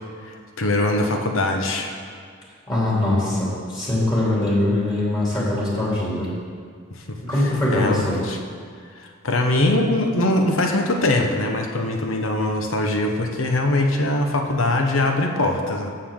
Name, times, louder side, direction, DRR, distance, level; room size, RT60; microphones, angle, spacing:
voice 1, 0.2-1.9 6.9-8.4 9.0-15.9, left 2 dB, 80° left, 3 dB, 1.1 m, -22 dB
voice 2, 2.7-6.3 7.2-8.2, left 1 dB, 20° left, -7 dB, 3.0 m, -22 dB
15.0 x 6.8 x 3.8 m, 2.1 s
head